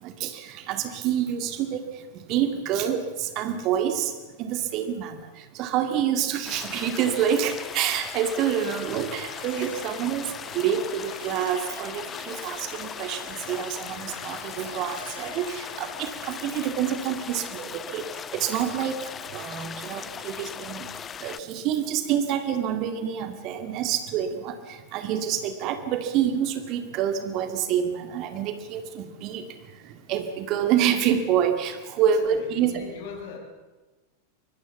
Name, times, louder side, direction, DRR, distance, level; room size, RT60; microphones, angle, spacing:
voice 1, 0.0-4.1 4.4-20.9 21.2-32.7, right 9 dB, 40° right, 8 dB, 2.1 m, -27 dB
sound 1, 6.4-21.4, left 8 dB, 25° left, 0.8 m, -38 dB
sound 2, 8.4-19.4, left 3 dB, 80° left, 3.1 m, -47 dB
voice 2, 32.0-33.4, left 5 dB, 50° left, 3 dB, 6.0 m, -41 dB
24.5 x 22.0 x 7.2 m, 1.2 s
figure-of-eight pair, 90°, 0 cm